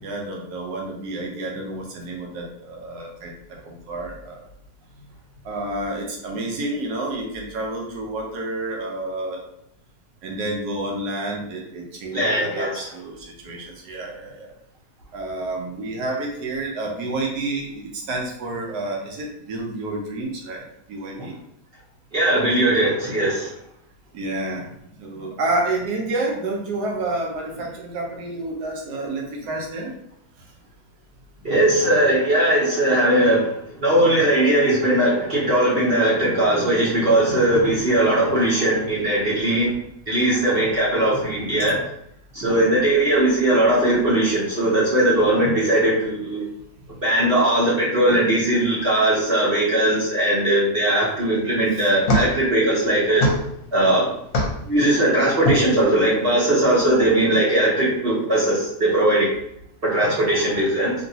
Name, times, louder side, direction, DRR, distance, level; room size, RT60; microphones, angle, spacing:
voice 1, 0.0-4.4 5.4-9.4 10.2-14.5 15.1-21.3 24.1-24.7 25.0-29.9 36.2-36.8 37.6-38.0 51.7-51.9, right 2 dB, 75° right, -1 dB, 1.2 m, -29 dB
voice 2, 12.1-12.8 22.1-23.5 31.4-33.5 33.8-39.7 40.1-41.8 42.3-46.4 47.0-53.2 53.7-54.1 54.7-59.3 59.8-60.9, right 1 dB, 45° right, -7 dB, 0.9 m, -19 dB
sound 1, 51.2-56.1, left 1 dB, 60° left, 1.0 m, -27 dB
3.0 x 2.7 x 2.7 m, 0.76 s
omnidirectional pair, 1.8 m